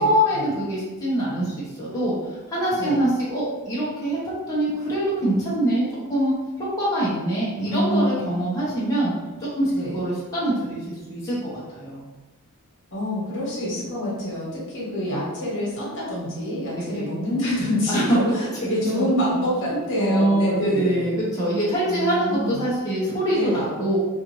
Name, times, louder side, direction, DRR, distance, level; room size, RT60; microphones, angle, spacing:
voice 1, 0.0-4.2 4.5-9.1 9.4-12.0 16.7-17.1 17.9-18.0 18.7-19.1 19.7-24.0, right 1 dB, 15° left, -9 dB, 0.9 m, -24 dB
voice 2, 7.6-8.1 9.7-10.0 12.9-21.1 21.8-22.6 23.3-23.6, equal, 55° left, -5 dB, 1.3 m, -26 dB
4.1 x 2.5 x 3.1 m, 1.2 s
head